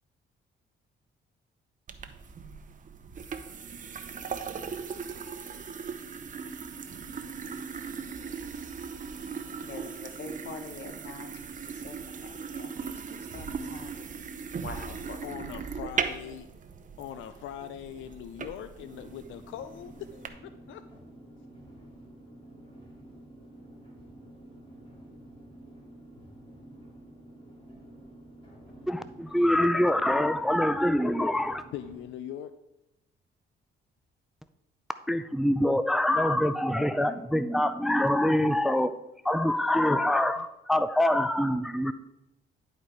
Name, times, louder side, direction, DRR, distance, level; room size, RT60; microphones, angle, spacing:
sound 1, 1.9-20.3, right 6 dB, 40° right, 0.8 m, -38 dB
voice 1, 9.6-11.3 11.7-13.0 13.3-14.3 14.6-15.2, left 4 dB, 65° left, 6 dB, 1.3 m, -44 dB
voice 2, 15.2-16.5 17.0-20.8 31.7-32.5 40.4-40.5, left 10 dB, 80° left, 11 dB, 0.4 m, -41 dB
sound 2, 18.8-32.0, right 1 dB, 25° left, 2.9 m, -50 dB
voice 3, 28.9-31.6 35.1-38.9 39.2-41.9, left 1 dB, ahead, 12 dB, 0.4 m, -25 dB
10.5 x 4.4 x 4.7 m, 0.89 s
cardioid pair, 90°, 20 cm